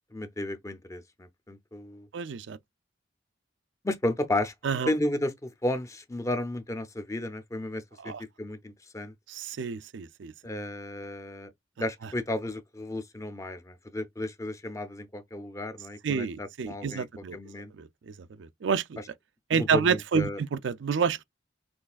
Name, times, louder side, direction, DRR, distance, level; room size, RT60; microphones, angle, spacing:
voice 1, 0.1-2.1 3.8-4.5 4.9-9.1 10.4-11.5 11.8-17.1 17.3-17.7 19.5-20.4, left 1 dB, 15° left, 0.6 m, -33 dB
voice 2, 2.1-2.6 4.6-4.9 8.0-8.2 9.3-10.3 12.0-12.1 16.0-17.4 17.8-19.0 19.5-21.2, right 6 dB, 75° right, 0.4 m, -29 dB
6.2 x 3.2 x 2.4 m
head